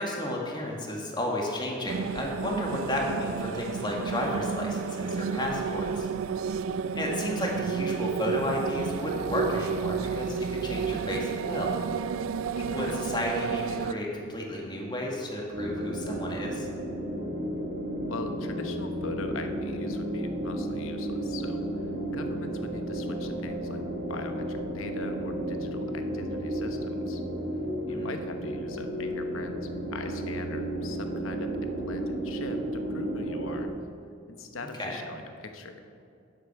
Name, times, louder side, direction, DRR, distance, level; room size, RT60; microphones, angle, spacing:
voice 1, 0.0-6.1 7.0-11.7 12.7-16.7 27.9-28.1 34.8-35.0, left 1 dB, 20° left, -1 dB, 1.8 m, -32 dB
sound 1, 1.9-13.9, right 6 dB, 85° right, 0.4 m, -31 dB
voice 2, 12.5-13.0 18.1-23.8 24.1-27.2 27.9-33.7 34.3-35.8, left 3 dB, 85° left, 6 dB, 1.0 m, -41 dB
sound 2, 15.5-33.7, right 1 dB, 55° right, 1.5 m, -33 dB
10.5 x 7.7 x 5.8 m, 2.5 s
head